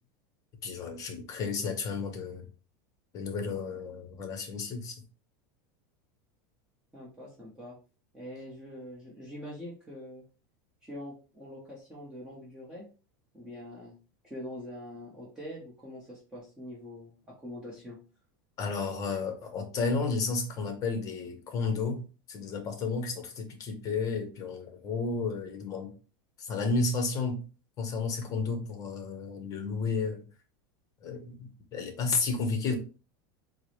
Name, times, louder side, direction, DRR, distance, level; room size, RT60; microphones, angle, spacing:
voice 1, 0.6-2.4 3.1-5.0 18.6-22.0 22.3-25.9 26.4-27.4 27.8-30.2 31.0-32.8, left 4 dB, 30° left, 0.8 m, -32 dB
voice 2, 6.9-7.7 8.1-10.2 10.8-12.9 13.3-14.0 14.2-18.0, left 1 dB, 10° right, 0.9 m, -44 dB
4.5 x 2.1 x 3.1 m
supercardioid pair, 150°, 11 cm